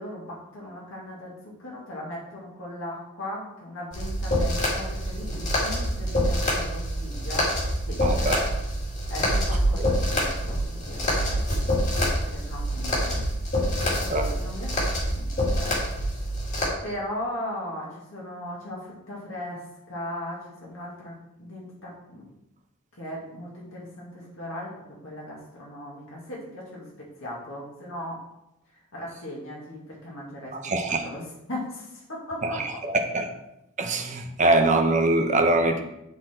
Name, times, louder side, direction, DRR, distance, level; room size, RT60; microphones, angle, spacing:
voice 1, 0.0-7.5 7.8-8.3 9.1-11.4 12.2-13.2 14.1-15.8 16.8-22.2 23.0-26.9 27.2-28.2 28.9-32.8, left 1 dB, 65° left, -4 dB, 2.1 m, -38 dB
sound 1, 3.9-16.7, equal, 35° left, 2.5 m, -26 dB
voice 2, 8.0-8.4 9.8-9.9 14.1-14.3 30.5-31.0 32.4-33.4 33.8-35.8, right 2 dB, 35° right, 5 dB, 0.8 m, -23 dB
9.9 x 4.2 x 4.4 m, 0.87 s
head